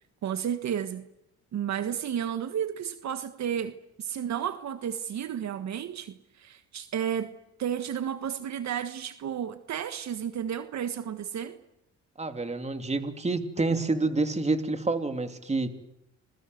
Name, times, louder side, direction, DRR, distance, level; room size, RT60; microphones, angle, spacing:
voice 1, 0.2-1.1 1.5-7.3 7.6-11.6, right 9 dB, 65° right, 10 dB, 1.5 m, -32 dB
voice 2, 12.2-15.7, right 3 dB, 20° right, 8 dB, 2.9 m, -28 dB
27.5 x 21.5 x 7.9 m, 0.84 s
cardioid pair, 90°, 30 cm